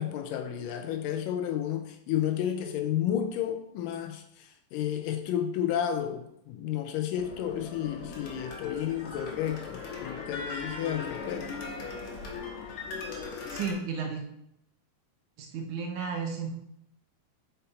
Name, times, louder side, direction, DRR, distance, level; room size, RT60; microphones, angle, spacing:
voice 1, 0.0-11.5, left 10 dB, 80° left, 6 dB, 2.0 m, -32 dB
sound 1, 7.2-13.7, left 4 dB, 65° left, 2.2 m, -39 dB
voice 2, 13.5-14.2 15.4-16.5, right 5 dB, 80° right, 3 dB, 1.8 m, -33 dB
5.6 x 5.4 x 4.0 m, 0.76 s
omnidirectional pair, 4.2 m